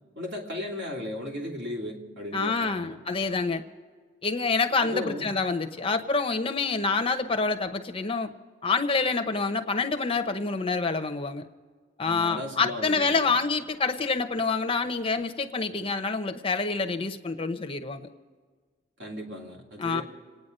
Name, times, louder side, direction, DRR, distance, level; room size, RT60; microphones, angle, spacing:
voice 1, 0.1-3.0 4.8-5.3 12.0-13.3 19.0-20.0, left 1 dB, 60° right, -1 dB, 3.1 m, -36 dB
voice 2, 2.3-3.6 4.2-8.3 8.6-11.4 12.0-18.1 19.8-20.0, left 4 dB, 25° left, 7 dB, 0.8 m, -27 dB
27.5 x 9.5 x 5.4 m, 1.5 s
head